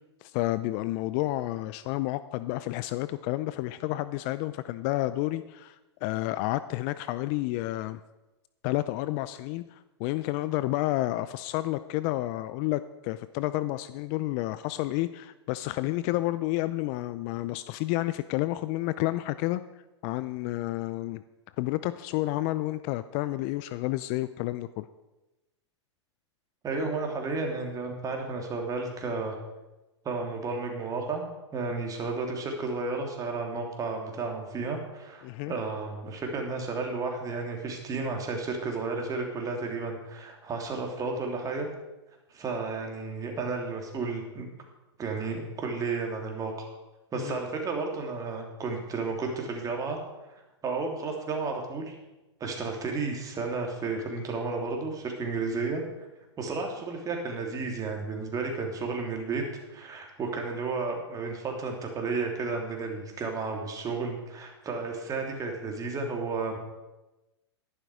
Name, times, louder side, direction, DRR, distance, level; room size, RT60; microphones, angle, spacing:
voice 1, 0.2-8.0 8.6-19.6 20.0-21.2 21.6-24.9 35.2-35.5 47.1-47.4, left 17 dB, 40° left, 14 dB, 0.5 m, -30 dB
voice 2, 26.6-29.4 30.0-41.7 42.3-44.4 45.0-46.5 47.1-50.0 50.6-51.9 52.4-55.8 56.4-59.4 59.7-66.6, right 4 dB, 25° right, 2 dB, 3.0 m, -32 dB
12.0 x 11.0 x 4.9 m, 1.0 s
hypercardioid pair, 110°, 15 cm